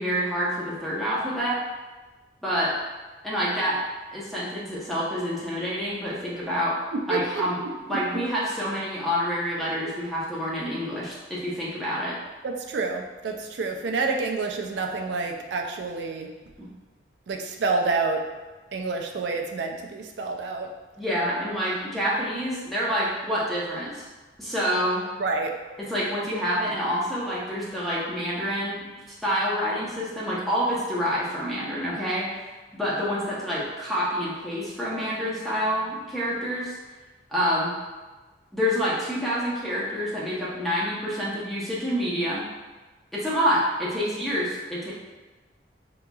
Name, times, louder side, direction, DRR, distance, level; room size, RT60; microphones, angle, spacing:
voice 1, 0.0-1.6 2.4-2.7 3.2-3.8 4.1-6.8 7.1-12.2 21.0-24.0 24.4-25.0 25.8-28.8 29.2-32.3 32.7-36.8 37.3-37.7 38.5-42.4 43.1-44.9, equal, ahead, -8 dB, 0.7 m, -27 dB
voice 2, 7.1-7.4 7.9-8.0 12.4-16.3 17.3-18.2 18.7-20.7 25.2-25.5, right 3 dB, 75° right, 3 dB, 0.4 m, -28 dB
3.7 x 2.9 x 2.3 m, 1.2 s
head